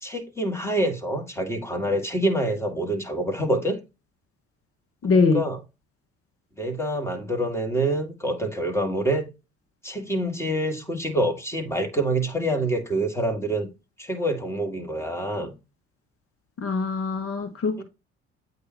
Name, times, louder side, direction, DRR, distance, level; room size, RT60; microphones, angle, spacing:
voice 1, 0.0-3.8 5.1-5.6 6.6-9.3 9.8-13.7 14.0-15.5 17.8-17.9, right 1 dB, 5° left, 2.2 m, -26 dB
voice 2, 5.0-5.5 16.6-17.8, left 4 dB, 40° left, 1.3 m, -22 dB
8.3 x 2.8 x 4.5 m
hypercardioid pair, 55°, 35 cm